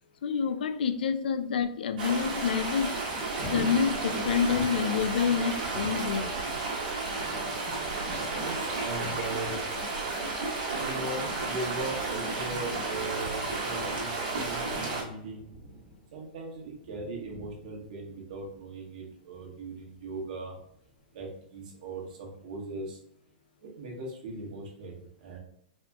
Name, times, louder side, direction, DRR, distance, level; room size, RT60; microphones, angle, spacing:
voice 1, 0.2-2.9 3.4-6.3, left 6 dB, 85° left, 10 dB, 0.4 m, -28 dB
sound 1, 2.0-15.0, right 3 dB, 75° right, 1.4 m, -32 dB
Thunder, 2.7-21.5 22.0-22.1, right 1 dB, 30° right, 1.1 m, -48 dB
voice 2, 8.4-9.6 10.7-15.5 16.1-20.6 21.1-23.0 23.6-25.4, right 2 dB, 55° right, -1 dB, 1.3 m, -39 dB
4.1 x 2.9 x 2.3 m, 0.73 s
supercardioid pair, 165°, 5 cm